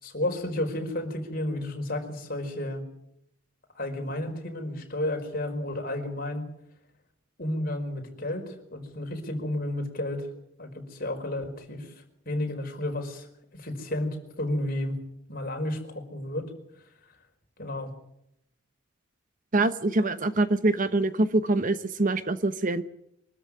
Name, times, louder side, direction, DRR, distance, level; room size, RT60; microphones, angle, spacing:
voice 1, 0.0-2.8 3.7-6.5 7.4-10.3 10.6-11.9 12.2-13.3 13.5-15.0 15.3-16.5 17.6-17.9, left 1 dB, 45° left, 3 dB, 4.9 m, -32 dB
voice 2, 19.5-22.8, right 2 dB, 40° right, 12 dB, 1.0 m, -24 dB
24.5 x 13.5 x 9.9 m, 0.78 s
head